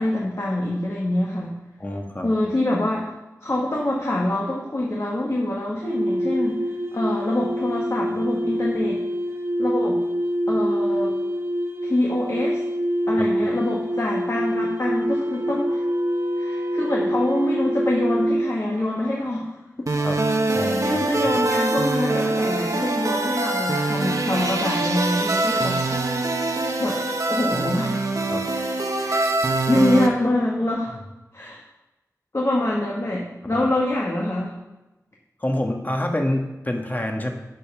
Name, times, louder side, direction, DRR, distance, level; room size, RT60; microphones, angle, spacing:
voice 1, 0.0-1.5 2.2-3.1 3.4-6.6 6.9-9.0 9.6-10.0 10.5-11.1 11.8-12.6 13.1-15.8 16.4-19.6 20.6-26.3 26.8-27.0 27.3-28.0 29.0-29.3 29.7-30.9 31.3-31.6 32.3-34.5, left 1 dB, 50° left, -3 dB, 1.7 m, -25 dB
voice 2, 1.8-2.3 20.0-20.2 20.5-21.4 28.3-28.8 31.4-31.5 33.5-33.7 35.4-37.3, left 1 dB, 30° left, 2 dB, 1.5 m, -27 dB
sound 1, 5.8-18.5, equal, 40° right, 1.3 m, -25 dB
Wind instrument woodwind instrument, 14.2-19.3 20.0-24.6 25.4-27.6, right 3 dB, 85° right, 0.7 m, -40 dB
sound 2, 19.9-30.1, right 2 dB, 65° right, 1.2 m, -24 dB
11.5 x 5.5 x 6.0 m, 1.0 s
wide cardioid pair, 65°, 6 cm